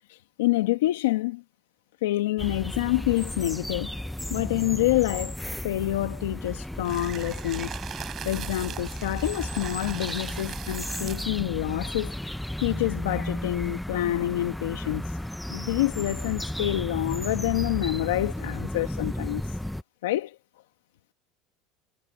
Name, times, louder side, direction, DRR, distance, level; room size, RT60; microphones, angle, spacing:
voice 1, 0.1-1.4 2.0-3.9 4.3-5.4 5.6-7.7 8.2-12.2 12.6-15.2 15.5-19.6 20.0-20.4, left 16 dB, 85° left, 1.2 m, -27 dB
sound 1, 2.4-19.8, left 1 dB, 5° left, 0.7 m, -34 dB
sound 2, 6.8-11.4, right 10 dB, 40° right, 4.4 m, -40 dB
supercardioid pair, 105°, 0 cm